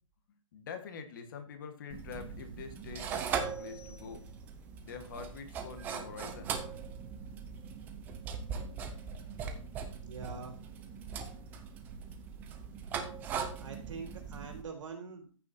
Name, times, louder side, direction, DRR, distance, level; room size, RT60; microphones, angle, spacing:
voice 1, 0.5-4.3 4.8-6.6 7.1-7.2, left 5 dB, 35° left, 8 dB, 1.5 m, -45 dB
sound 1, 1.9-14.6, right 6 dB, 10° right, 0.6 m, -40 dB
sound 2, 3.1-4.6, left 6 dB, 55° left, 2.5 m, -61 dB
voice 2, 10.0-10.7 13.6-15.3, right 5 dB, 65° right, 3 dB, 3.6 m, -44 dB
14.0 x 6.3 x 2.8 m, 0.39 s
hypercardioid pair, 165°, 17 cm